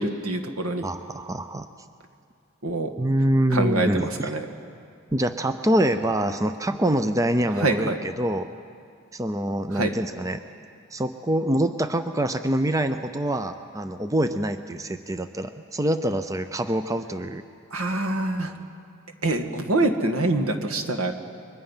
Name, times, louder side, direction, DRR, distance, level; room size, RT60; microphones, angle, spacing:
voice 1, 0.0-0.9 2.6-2.9 3.5-4.5 7.5-8.0 9.7-9.9 17.7-18.5 19.2-21.1, right 2 dB, 80° right, 5 dB, 1.8 m, -25 dB
voice 2, 0.8-1.7 3.0-4.3 5.1-8.5 9.1-10.4 10.9-17.4, right 1 dB, 15° right, 9 dB, 0.6 m, -25 dB
30.0 x 23.5 x 5.7 m, 2.3 s
head